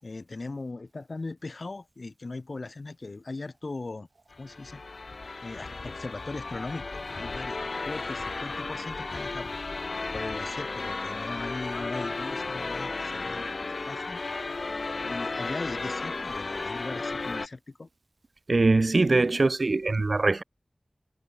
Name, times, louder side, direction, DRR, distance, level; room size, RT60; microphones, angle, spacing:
voice 1, 0.0-4.1 4.4-9.5 10.1-17.9, left 3 dB, 70° left, 3.1 m, -39 dB
sound 1, 4.3-17.5, left 3 dB, 85° left, 1.5 m, -34 dB
voice 2, 18.5-20.4, right 3 dB, 70° right, 0.4 m, -22 dB
wide cardioid pair, 60°, 0 cm